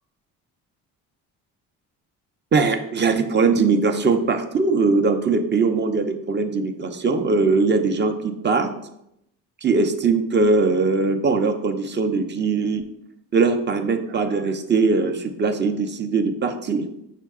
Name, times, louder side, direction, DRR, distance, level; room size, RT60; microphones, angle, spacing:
voice 1, 2.5-8.7 9.6-12.8 13.3-16.9, right 4 dB, 25° right, 7 dB, 0.5 m, -21 dB
5.6 x 2.2 x 3.5 m, 0.79 s
supercardioid pair, 65°, 44 cm